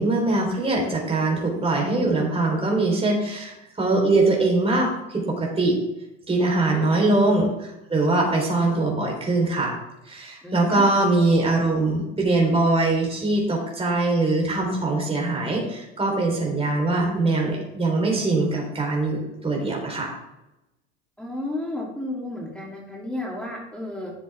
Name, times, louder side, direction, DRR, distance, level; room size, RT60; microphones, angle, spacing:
voice 1, 0.0-5.8 6.3-9.7 10.0-20.1, right 2 dB, 15° right, -1 dB, 3.8 m, -22 dB
voice 2, 6.6-7.3 10.4-10.8 21.2-24.1, left 2 dB, 5° left, -3 dB, 2.5 m, -33 dB
11.5 x 7.3 x 3.5 m, 0.90 s
hypercardioid pair, 80°, 34 cm